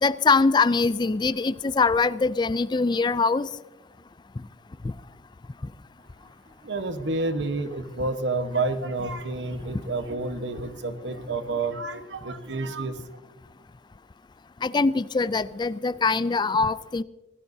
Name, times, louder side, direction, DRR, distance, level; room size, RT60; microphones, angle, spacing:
voice 1, 0.0-3.5 14.6-17.0, left 4 dB, 25° left, 0.4 m, -23 dB
voice 2, 6.6-13.0, right 3 dB, 85° right, 1.2 m, -29 dB
25.5 x 17.0 x 2.7 m
head